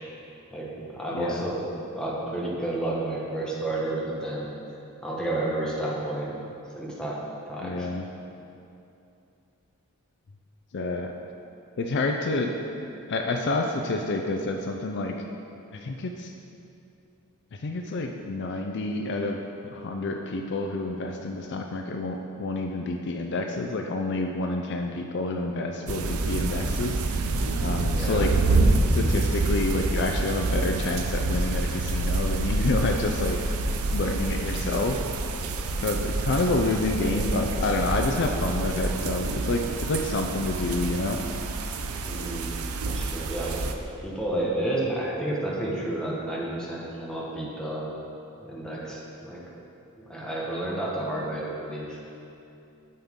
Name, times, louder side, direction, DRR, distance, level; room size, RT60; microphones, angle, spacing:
voice 1, 0.5-1.6 2.0-4.5 5.0-6.3 6.8-7.9 27.9-28.3 42.0-42.5 42.8-43.6 44.0-47.9 48.4-49.4 50.0-52.0, right 1 dB, 5° left, -5 dB, 1.2 m, -31 dB
voice 2, 1.1-1.5 7.6-8.1 10.7-11.1 11.8-12.5 12.8-15.2 15.7-16.3 17.6-19.4 19.6-27.0 27.6-28.3 28.9-33.4 33.9-35.0 35.8-41.2, left 2 dB, 55° left, 3 dB, 0.4 m, -28 dB
sound 1, 25.9-43.7, right 2 dB, 80° right, 0.6 m, -27 dB
9.4 x 7.1 x 3.7 m, 2.8 s
head